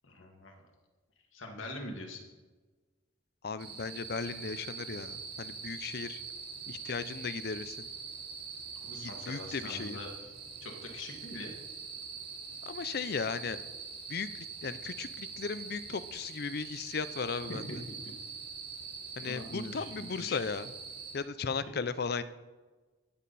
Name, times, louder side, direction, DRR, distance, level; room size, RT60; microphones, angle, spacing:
voice 1, 0.0-0.5 1.3-2.2 8.8-10.3 10.6-11.5 17.5-18.0 19.2-20.4, left 1 dB, 85° left, 2 dB, 2.1 m, -43 dB
voice 2, 3.4-6.2 6.7-7.9 8.9-10.0 12.7-13.6 14.1-17.6 19.2-20.7 21.1-22.2, left 5 dB, 50° left, 14 dB, 0.5 m, -36 dB
sound 1, 3.6-21.1, right 5 dB, 55° right, 3.7 m, -44 dB
17.5 x 7.3 x 4.2 m, 1.3 s
head